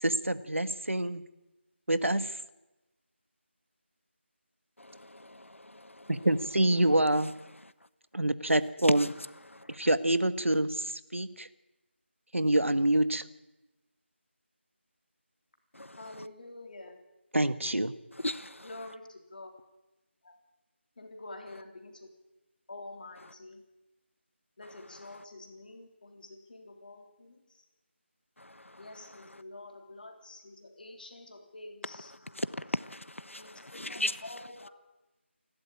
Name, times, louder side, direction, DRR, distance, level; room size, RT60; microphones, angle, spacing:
voice 1, 0.0-1.2 1.9-2.3 6.1-7.3 8.1-9.1 9.7-11.5 12.3-13.2 17.3-17.9, right 1 dB, 85° right, 1.7 m, -26 dB
voice 2, 16.0-17.0 18.6-19.5 20.3-20.4 21.0-22.0 22.7-23.6 24.6-27.4 28.8-32.1 33.4-33.5 33.9-34.7, left 2 dB, 45° left, 3.4 m, -47 dB
voice 3, 18.2-18.7 32.4-32.5 32.7-34.4, left 1 dB, 90° left, 1.1 m, -35 dB
29.0 x 12.5 x 8.9 m
figure-of-eight pair, 165°, 7 cm